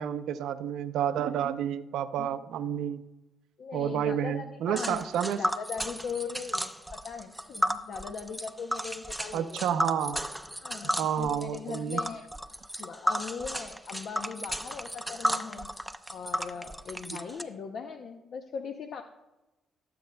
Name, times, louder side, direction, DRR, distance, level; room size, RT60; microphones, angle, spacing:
voice 1, 0.0-3.0 3.7-5.4 9.3-10.2 11.0-12.0, right 9 dB, 85° right, 11 dB, 0.5 m, -30 dB
voice 2, 3.6-9.6 10.6-12.2 12.8-15.7 16.1-19.0, left 6 dB, 65° left, 5 dB, 0.7 m, -39 dB
Tick, 4.8-17.4, equal, 5° right, 0.6 m, -33 dB
19.0 x 7.8 x 2.2 m, 1.0 s
cardioid pair, 90°, 0 cm